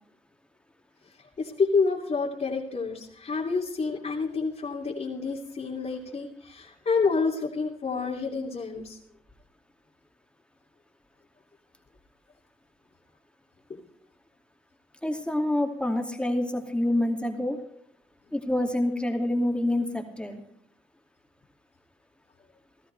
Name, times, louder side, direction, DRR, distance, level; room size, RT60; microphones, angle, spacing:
voice 1, 1.4-9.0 13.7-13.8, left 4 dB, 50° left, -5 dB, 2.8 m, -28 dB
voice 2, 15.0-17.6 18.3-20.4, left 1 dB, 5° left, 3 dB, 2.5 m, -27 dB
18.0 x 14.0 x 3.4 m, 0.70 s
cardioid pair, 65°, 14 cm